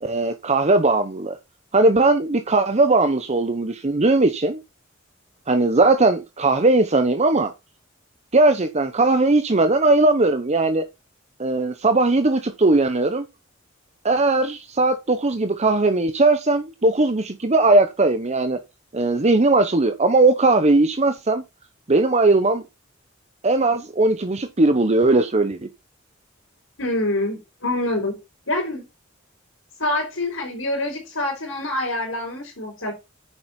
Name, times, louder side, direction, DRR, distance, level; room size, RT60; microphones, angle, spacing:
voice 1, 0.0-1.4 1.7-4.6 5.5-7.5 8.3-10.8 11.4-13.3 14.0-18.6 18.9-21.4 21.9-22.6 23.4-25.7, right 2 dB, 35° right, 0.9 m, -19 dB
voice 2, 26.8-28.2 28.5-28.9 29.8-32.9, left 1 dB, 90° left, 4.2 m, -26 dB
9.1 x 7.1 x 4.3 m
head